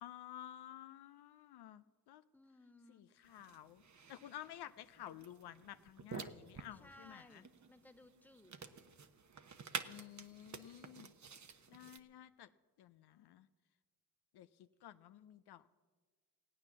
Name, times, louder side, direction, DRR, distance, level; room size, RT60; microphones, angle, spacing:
voice 1, 0.0-2.2 2.9-3.8 4.1-7.4 9.8-11.1 11.7-12.5 12.8-13.5 14.3-15.7, left 12 dB, 70° left, 12 dB, 0.6 m, -53 dB
voice 2, 2.3-3.1 6.7-8.7, left 1 dB, 5° left, 6 dB, 1.5 m, -61 dB
sound 1, 3.2-12.0, right 6 dB, 45° right, 1.1 m, -51 dB
17.5 x 9.0 x 7.3 m, 1.4 s
supercardioid pair, 50°, 40 cm